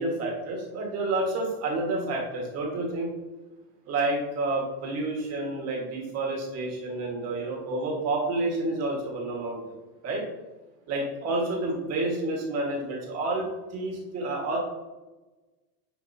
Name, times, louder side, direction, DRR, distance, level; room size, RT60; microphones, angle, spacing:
voice 1, 0.0-3.1 3.9-9.6 10.0-10.2 10.9-14.6, right 2 dB, 30° right, -1 dB, 1.7 m, -29 dB
9.4 x 4.9 x 2.8 m, 1.1 s
supercardioid pair, 160°, 47 cm